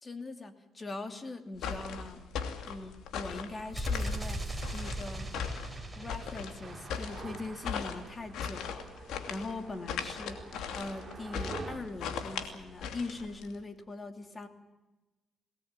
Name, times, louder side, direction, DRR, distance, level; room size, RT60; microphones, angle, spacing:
voice 1, 0.0-2.2 2.7-4.4 4.7-5.3 5.9-8.8 9.3-14.5, left 2 dB, 30° left, 7 dB, 2.7 m, -41 dB
sound 1, 1.6-13.5, left 7 dB, 85° left, 2.8 m, -38 dB
sound 2, 3.7-7.6, right 1 dB, 10° right, 5.4 m, -39 dB
sound 3, 6.6-11.8, right 4 dB, 35° right, 6.8 m, -46 dB
23.0 x 18.5 x 9.0 m, 1.1 s
cardioid pair, 90°, 0 cm